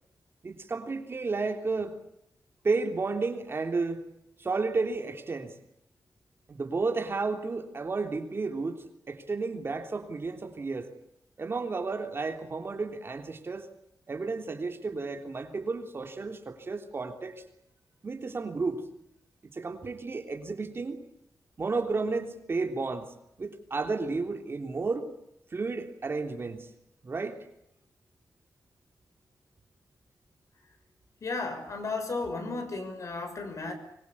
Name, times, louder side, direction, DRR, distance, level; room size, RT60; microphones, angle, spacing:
voice 1, 0.4-2.0 2.6-4.0 4.4-5.6 6.5-10.9 11.4-13.7 14.1-17.4 18.0-18.8 19.5-21.0 21.6-25.1 25.5-26.7 27.0-27.4, right 3 dB, 40° right, 5 dB, 3.5 m, -32 dB
voice 2, 31.2-33.7, left 3 dB, 55° left, 7 dB, 6.2 m, -34 dB
25.0 x 23.0 x 8.6 m, 0.78 s
wide cardioid pair, 155°, 6 cm